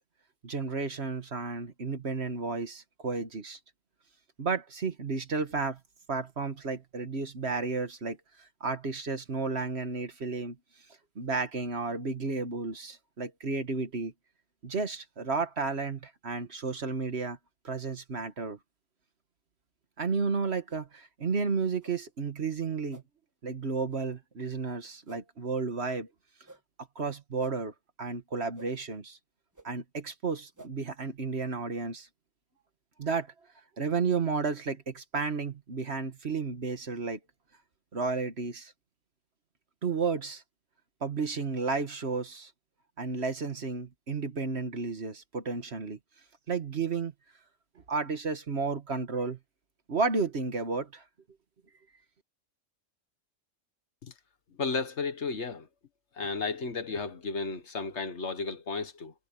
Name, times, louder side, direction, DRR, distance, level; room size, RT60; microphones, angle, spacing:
voice 1, 0.4-3.6 4.4-5.8 6.1-8.2 8.6-10.6 11.2-14.1 14.6-17.4 17.6-18.6 20.0-23.0 23.4-26.1 27.0-27.7 28.0-29.2 29.6-32.1 33.0-33.3 33.8-37.2 37.9-38.7 39.8-40.4 41.0-42.5 43.0-46.0 46.5-47.1 47.9-49.4 49.9-51.0, right 4 dB, 55° right, 1.8 m, -32 dB
sound 1, 20.7-20.8 21.8-21.9 22.9-23.0 23.9-24.0 25.1-25.2 26.4-26.6 27.4-27.5 28.5-28.7 29.5-29.7 30.5-30.7, right 2 dB, 15° right, 1.3 m, -51 dB
voice 2, 54.6-55.7 56.2-59.1, left 4 dB, 60° left, 1.6 m, -33 dB
omnidirectional pair, 1.4 m